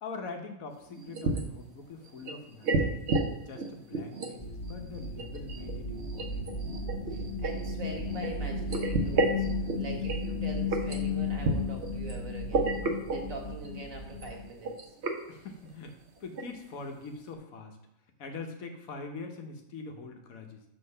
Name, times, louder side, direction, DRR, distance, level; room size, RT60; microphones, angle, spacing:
voice 1, 0.0-3.0 3.4-6.5 15.3-15.9 16.2-17.8 18.2-20.6, left 3 dB, 90° left, 4 dB, 1.4 m, -43 dB
sound 1, 0.9-1.6 2.0-3.3 3.5-4.3 4.6-8.3 8.7-10.3 10.7-11.0 11.4-12.2 12.5-13.3 13.6-13.7 14.1-14.3 14.6-15.2 15.7-15.8 16.2-16.5 16.8-16.9, right 3 dB, 60° right, 1.0 m, -31 dB
sound 2, 4.4-14.5, left 3 dB, 25° left, 1.1 m, -34 dB
voice 2, 7.1-9.4 9.8-14.7, right 3 dB, 75° right, 1 dB, 1.8 m, -43 dB
6.8 x 3.7 x 5.4 m, 0.86 s
omnidirectional pair, 1.4 m